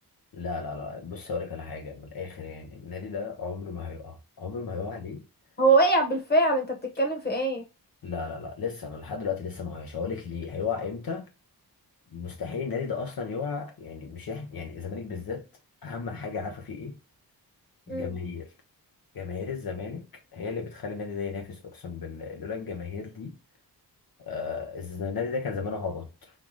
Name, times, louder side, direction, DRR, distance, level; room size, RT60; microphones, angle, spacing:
voice 1, 0.3-5.2 8.0-11.3 12.1-15.4 15.8-17.0 17.9-18.5 19.1-20.1 20.3-23.4 24.2-26.3, left 5 dB, 65° left, 0.7 m, -34 dB
voice 2, 5.6-7.6 17.9-18.1, right 2 dB, 25° left, 1.2 m, -23 dB
5.6 x 2.4 x 3.0 m
wide cardioid pair, 165°, 39 cm